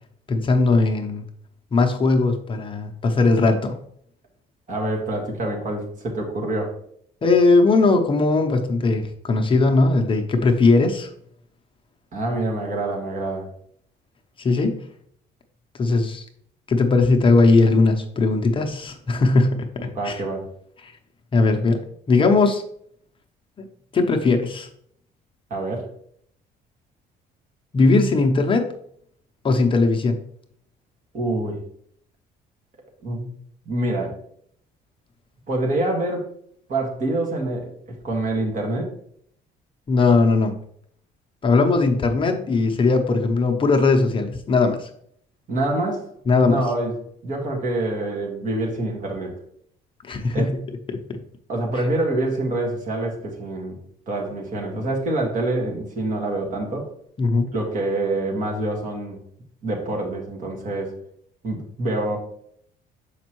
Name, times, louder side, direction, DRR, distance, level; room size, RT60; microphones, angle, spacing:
voice 1, 0.3-1.2 1.7-3.8 7.2-11.1 14.4-14.8 15.8-16.3 16.7-20.2 20.8-21.0 21.3-21.8 22.1-22.6 23.9-24.7 27.7-28.7 29.4-30.2 39.9-40.6 41.4-44.9 46.3-46.7 50.0-50.5 50.9-51.2 57.2-57.5, left 3 dB, 30° left, 4 dB, 0.7 m, -19 dB
voice 2, 4.7-6.8 12.1-13.5 19.9-20.4 25.5-25.9 31.1-31.6 33.0-33.3 33.7-34.2 35.5-36.3 36.7-37.7 38.0-38.9 45.5-46.1 46.4-46.9 47.2-49.4 50.3-50.5 51.5-53.8 54.1-56.9 57.5-59.2 59.6-60.9 61.4-62.2, right 2 dB, 50° right, 1 dB, 1.8 m, -26 dB
6.6 x 5.2 x 3.0 m, 0.66 s
cardioid pair, 110°, 17 cm